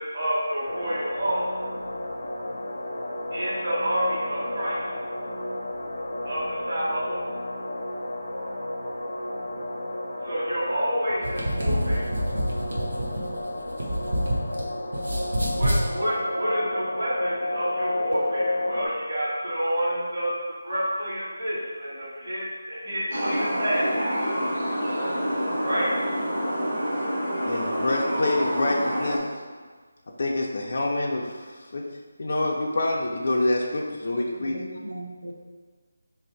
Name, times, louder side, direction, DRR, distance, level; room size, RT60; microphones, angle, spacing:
voice 1, 0.0-1.5 3.3-4.9 6.2-7.2 10.2-12.1 15.5-20.3 20.6-24.4 25.6-25.9, equal, 40° right, -9 dB, 1.2 m, -29 dB
sound 1, 0.7-18.9, left 1 dB, 80° left, 0.7 m, -32 dB
sound 2, 11.1-14.6 14.9-15.8, equal, 60° right, 0.8 m, -27 dB
sound 3, 23.1-29.2, equal, 20° right, 0.6 m, -27 dB
voice 2, 27.5-29.2 30.2-31.4 31.7-31.8 32.2-34.6, left 2 dB, 35° left, -2 dB, 0.3 m, -26 dB
voice 3, 34.1-35.4, right 1 dB, 85° right, -1 dB, 0.6 m, -39 dB
3.2 x 2.6 x 4.4 m, 1.5 s
figure-of-eight pair, 180°, 0 cm